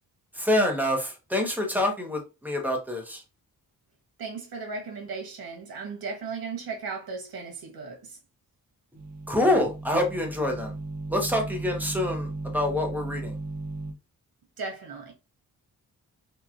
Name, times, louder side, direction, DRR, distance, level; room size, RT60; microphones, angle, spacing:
voice 1, 0.3-3.2 9.3-10.7 11.1-13.4, left 1 dB, 5° right, 0.6 m, -26 dB
voice 2, 4.2-8.2 14.6-15.1, right 4 dB, 80° right, 1.0 m, -36 dB
sound 1, 9.0-13.9, right 2 dB, 50° right, 0.6 m, -36 dB
2.9 x 2.2 x 2.4 m
wide cardioid pair, 130°, 36 cm